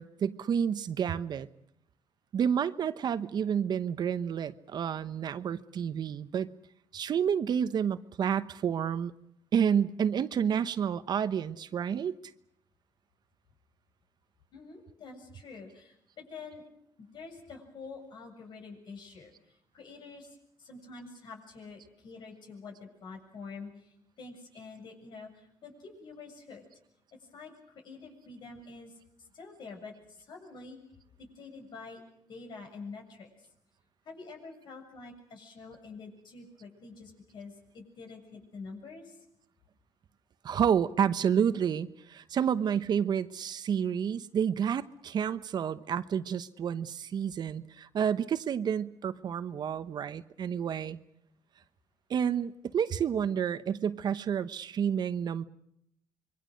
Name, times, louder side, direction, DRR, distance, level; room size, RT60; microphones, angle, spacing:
voice 1, 0.0-1.5 2.3-6.5 6.9-9.1 9.5-12.2 40.4-51.0 52.1-55.5, right 8 dB, 55° right, 13 dB, 1.0 m, -30 dB
voice 2, 14.5-16.6 17.0-26.6 27.3-28.9 29.3-30.8 31.2-32.0 32.3-33.3 34.0-39.2, left 4 dB, 60° left, 3 dB, 7.4 m, -47 dB
26.5 x 23.0 x 6.5 m, 0.77 s
cardioid pair, 90°, 9 cm